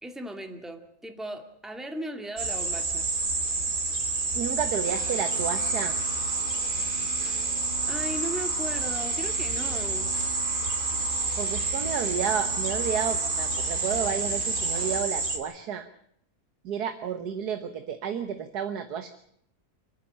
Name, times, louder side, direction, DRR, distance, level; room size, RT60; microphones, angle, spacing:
voice 1, 0.0-3.1 7.9-10.1, right 1 dB, ahead, 5 dB, 2.3 m, -37 dB
sound 1, 2.4-15.4, right 3 dB, 65° right, 3.0 m, -29 dB
voice 2, 4.3-5.9 11.4-15.9 16.6-19.1, right 7 dB, 85° right, 8 dB, 1.8 m, -31 dB
sound 2, 4.8-15.0, equal, 35° left, 2.3 m, -42 dB
30.0 x 10.0 x 9.9 m, 0.68 s
omnidirectional pair, 1.6 m